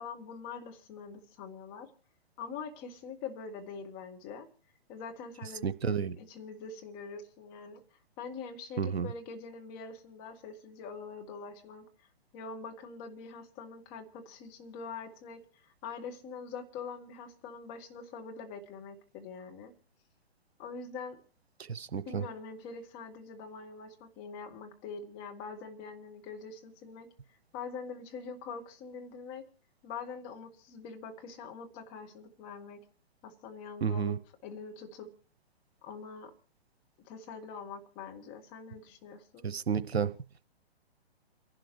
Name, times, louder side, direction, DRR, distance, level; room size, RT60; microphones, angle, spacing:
voice 1, 0.0-1.9 2.4-4.5 4.9-7.8 8.2-12.1 12.3-19.7 20.6-21.2 22.0-27.1 27.5-29.4 29.8-32.8 33.2-34.2 34.4-35.1 35.8-36.3 37.1-39.5, left 5 dB, 25° left, 1.9 m, -44 dB
voice 2, 5.6-6.1 8.8-9.1 21.7-22.2 33.8-34.1 39.4-40.1, right 7 dB, 75° right, 0.8 m, -30 dB
29.0 x 11.5 x 3.2 m
figure-of-eight pair, 125°, 32 cm